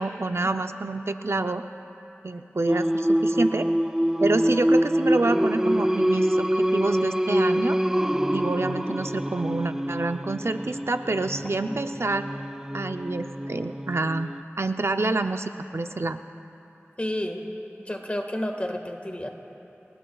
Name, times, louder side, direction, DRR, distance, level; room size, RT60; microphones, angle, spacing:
voice 1, 0.0-1.6 2.2-3.7 4.2-7.8 8.3-12.3 12.7-14.3 14.6-16.2, right 2 dB, 65° right, 8 dB, 0.5 m, -27 dB
Singing, 2.7-14.4, equal, 10° right, 0.5 m, -25 dB
voice 2, 17.0-17.5 17.8-19.3, left 1 dB, 30° left, 3 dB, 1.6 m, -30 dB
28.5 x 19.5 x 2.3 m, 2.9 s
wide cardioid pair, 45°, 5 cm